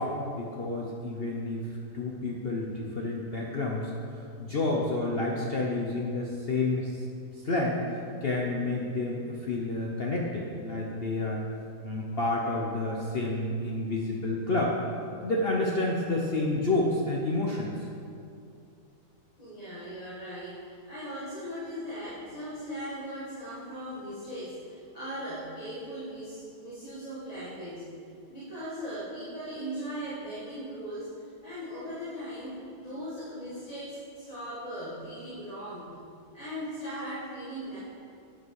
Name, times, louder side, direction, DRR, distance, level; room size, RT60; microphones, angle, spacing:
voice 1, 0.0-3.9 4.4-7.0 7.4-11.4 11.8-14.8 15.2-17.7, left 2 dB, 45° left, -3 dB, 0.9 m, -29 dB
voice 2, 19.4-27.9 28.3-36.0 36.3-37.8, equal, 25° left, -11 dB, 2.0 m, -39 dB
9.4 x 8.0 x 4.8 m, 2.5 s
omnidirectional pair, 1.7 m